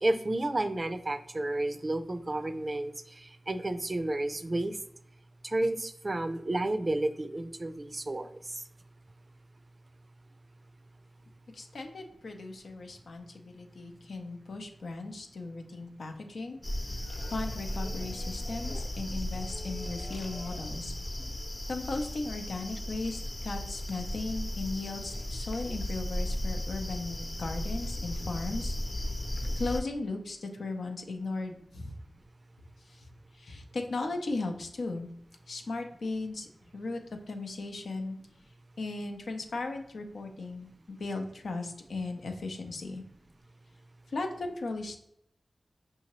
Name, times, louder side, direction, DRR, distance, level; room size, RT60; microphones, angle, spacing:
voice 1, 0.0-4.8 5.4-8.6 21.2-21.3, right 2 dB, 45° right, 10 dB, 0.4 m, -31 dB
voice 2, 11.5-16.6 17.3-20.9 21.7-28.7 29.6-32.0 32.8-33.1 33.3-35.1 35.5-36.5 36.7-37.0 37.3-38.2 38.8-43.0 44.1-45.0, left 3 dB, 85° left, 4 dB, 0.6 m, -37 dB
sound 1, 16.6-29.8, left 1 dB, 40° left, 0.7 m, -35 dB
5.5 x 2.7 x 3.0 m, 0.75 s
cardioid pair, 40°, 0 cm